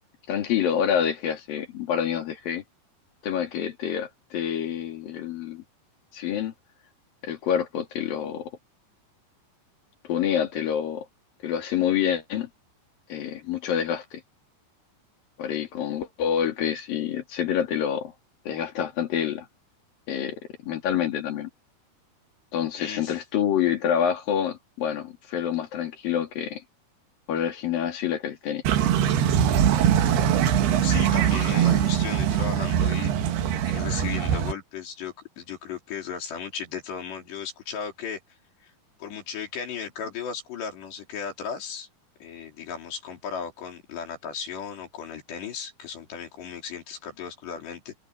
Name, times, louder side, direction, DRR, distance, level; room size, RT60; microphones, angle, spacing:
voice 1, 0.3-2.6 3.2-5.6 6.1-6.5 7.2-8.5 10.0-11.1 11.4-12.5 13.1-14.2 15.4-18.1 18.5-19.5 20.1-21.5 22.5-26.6 27.3-28.6, left 9 dB, 55° left, 4.2 m, -27 dB
voice 2, 22.8-23.2 30.8-33.1 33.7-38.2 38.6-38.7 39.0-41.9 42.2-47.9, left 7 dB, 75° left, 6.3 m, -35 dB
sound 1, 28.7-34.5, right 9 dB, 70° right, 3.5 m, -22 dB
omnidirectional pair, 5.0 m